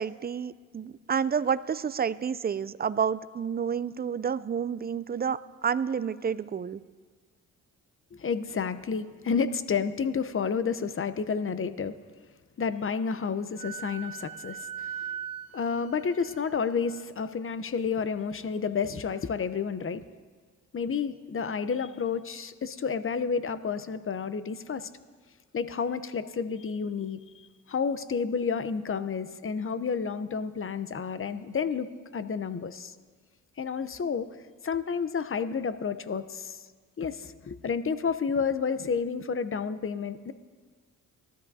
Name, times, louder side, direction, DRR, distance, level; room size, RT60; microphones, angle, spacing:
voice 1, 0.0-6.8, right 7 dB, 25° right, 16 dB, 0.5 m, -29 dB
voice 2, 8.1-12.0 12.6-15.1 15.5-20.0 20.7-24.9 25.5-32.9 33.6-34.3 34.6-36.6 37.0-40.3, left 6 dB, 35° left, 13 dB, 0.8 m, -30 dB
Wind instrument woodwind instrument, 13.6-17.0, right 8 dB, 60° right, 0.8 m, -40 dB
18.5 x 13.0 x 2.8 m, 1.5 s
supercardioid pair, 50°, 38 cm